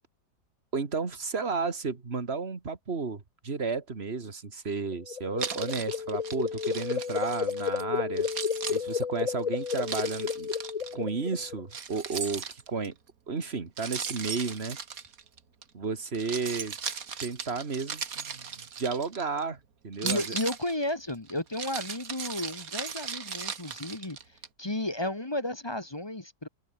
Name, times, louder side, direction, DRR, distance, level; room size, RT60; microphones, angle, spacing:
voice 1, 0.7-8.3 8.7-10.5 10.9-12.9 13.3-14.8 15.7-16.8 17.2-20.2, right 4 dB, 40° right, 2.4 m, -33 dB
sound 1, 4.9-11.6, left 6 dB, 45° left, 0.5 m, -32 dB
Keys jangling, 5.4-7.8 8.2-10.9 11.7-12.9 13.8-15.6 16.1-19.4 19.9-24.5, right 6 dB, 60° right, 2.0 m, -37 dB
voice 2, 20.0-26.5, left 1 dB, 15° left, 1.2 m, -33 dB
omnidirectional pair, 1.7 m